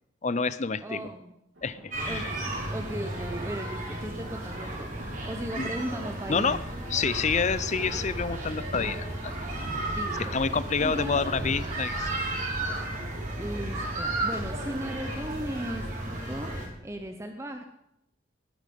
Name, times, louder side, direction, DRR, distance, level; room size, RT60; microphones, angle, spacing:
voice 1, 0.2-1.0 1.6-2.3 5.6-5.7 6.3-6.6 6.9-9.3 10.2-12.1, left 5 dB, 40° left, 16 dB, 0.6 m, -28 dB
voice 2, 0.8-1.3 2.1-2.3 2.7-4.9 5.2-6.6 9.9-10.3 10.8-11.2 13.4-16.5 16.8-17.6, right 1 dB, 15° right, 5 dB, 0.9 m, -36 dB
sound 1, 1.5-15.5, right 1 dB, 80° right, 3.9 m, -49 dB
sound 2, 1.9-16.7, right 1 dB, 45° right, 4.9 m, -33 dB
20.0 x 8.8 x 5.4 m, 0.83 s
head